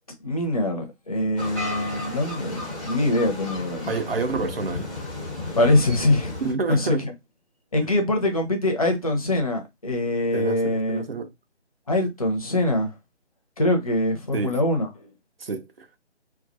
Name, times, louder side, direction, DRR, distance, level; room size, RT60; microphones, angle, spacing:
voice 1, 0.2-3.9 5.5-6.3 6.7-6.9 7.7-11.0 11.9-12.9 13.6-14.9, left 1 dB, 35° left, 0.5 m, -23 dB
sound 1, 1.4-6.5, left 2 dB, 5° left, 0.8 m, -33 dB
voice 2, 3.9-4.9 6.4-7.1 10.3-11.3 14.3-14.6 15.4-15.9, right 4 dB, 60° right, 0.5 m, -28 dB
2.3 x 2.1 x 2.5 m
figure-of-eight pair, 150°, 34 cm